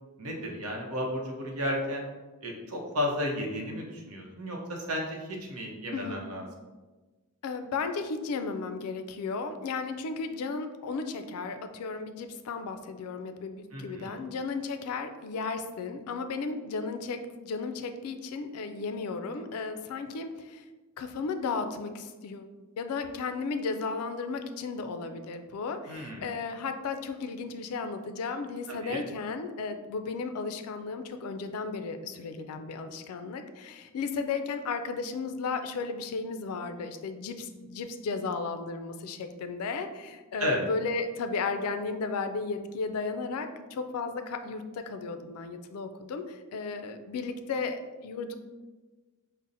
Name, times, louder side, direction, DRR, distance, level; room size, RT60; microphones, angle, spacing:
voice 1, 0.2-2.1 2.4-6.5 13.7-14.2 25.9-26.2 28.8-29.0 40.4-40.6, equal, 75° right, 0 dB, 0.7 m, -33 dB
voice 2, 5.9-6.2 7.4-20.6 21.0-22.5 22.8-48.3, left 4 dB, 80° left, 7 dB, 0.3 m, -34 dB
5.4 x 2.0 x 2.5 m, 1.3 s
head